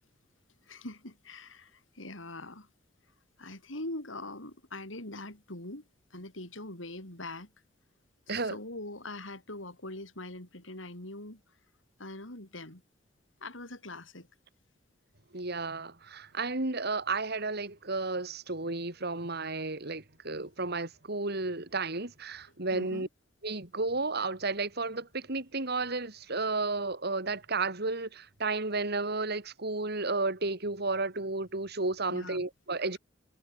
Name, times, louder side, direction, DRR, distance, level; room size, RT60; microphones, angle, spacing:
voice 1, 0.6-2.7 3.4-5.8 6.1-7.5 8.3-11.4 12.0-12.8 13.4-14.3 22.7-23.1 32.1-32.5, left 2 dB, 80° left, 7.5 m, -42 dB
voice 2, 15.3-23.1 23.4-33.0, right 3 dB, 60° right, 3.4 m, -32 dB
head